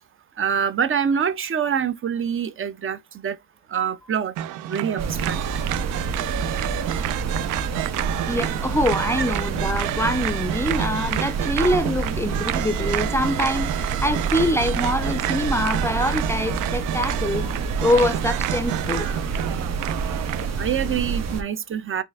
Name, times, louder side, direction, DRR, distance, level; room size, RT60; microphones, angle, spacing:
voice 1, 0.4-3.4 3.7-4.3 4.7-5.4 20.6-22.0, right 7 dB, 45° right, 0.6 m, -25 dB
sound 1, 4.4-20.5, right 12 dB, 80° right, 0.5 m, -29 dB
sound 2, 5.0-21.4, right 4 dB, 60° right, 1.0 m, -28 dB
voice 2, 8.2-19.5, left 1 dB, 10° left, 0.5 m, -24 dB
4.4 x 2.6 x 3.5 m
cardioid pair, 90°, 30 cm